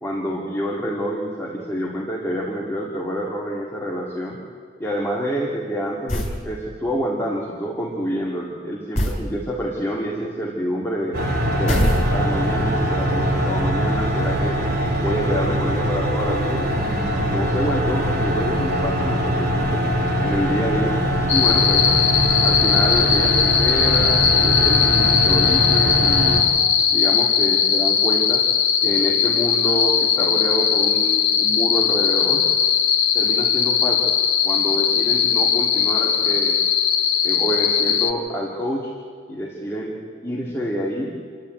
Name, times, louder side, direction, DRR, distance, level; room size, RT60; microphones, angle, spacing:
voice 1, 0.0-4.4 4.8-11.2 11.6-14.6 14.9-19.9 20.2-20.9 21.3-21.9 22.4-26.6 26.9-28.4 28.8-32.5 33.1-34.1 34.4-36.6 37.2-38.9 39.3-39.9 40.2-41.2, equal, 15° left, -3 dB, 2.5 m, -27 dB
sound 1, 6.1-6.4 8.9-9.3 11.7-12.5, equal, 40° left, 4.0 m, -22 dB
sound 2, 11.1-26.4, equal, 55° right, 3.0 m, -22 dB
sound 3, 21.3-38.1, left 7 dB, 90° left, 1.2 m, -19 dB
28.0 x 11.5 x 9.2 m, 2.3 s
head